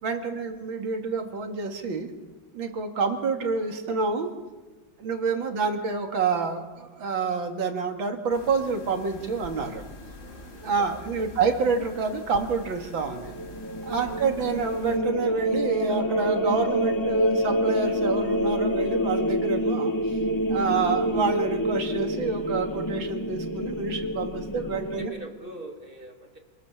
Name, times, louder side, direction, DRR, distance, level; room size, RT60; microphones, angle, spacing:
voice 1, 0.0-2.1 2.5-4.3 5.0-9.8 10.6-13.3 13.8-19.9 20.5-25.1, right 4 dB, 80° right, 4 dB, 2.8 m, -28 dB
sound 1, 8.3-15.0, left 1 dB, 40° left, 5.4 m, -44 dB
voice 2, 10.2-11.3 13.9-14.2 24.4-26.4, right 1 dB, 25° right, 3 dB, 2.7 m, -45 dB
sound 2, 13.1-25.1, equal, 15° left, 1.0 m, -27 dB
27.5 x 18.0 x 7.3 m, 1.2 s
omnidirectional pair, 2.1 m